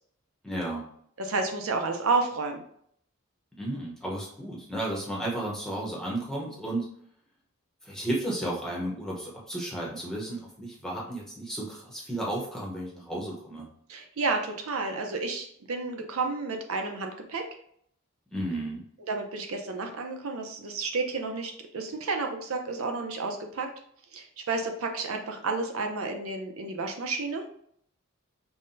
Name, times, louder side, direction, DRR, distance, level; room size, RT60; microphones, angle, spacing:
voice 1, 0.4-0.9 3.6-6.8 7.8-13.7 18.3-18.8, right 1 dB, 5° left, -4 dB, 0.8 m, -33 dB
voice 2, 1.2-2.6 13.9-17.5 19.1-23.7 24.1-27.4, right 3 dB, 80° right, 4 dB, 0.6 m, -31 dB
5.6 x 2.1 x 2.6 m, 0.66 s
head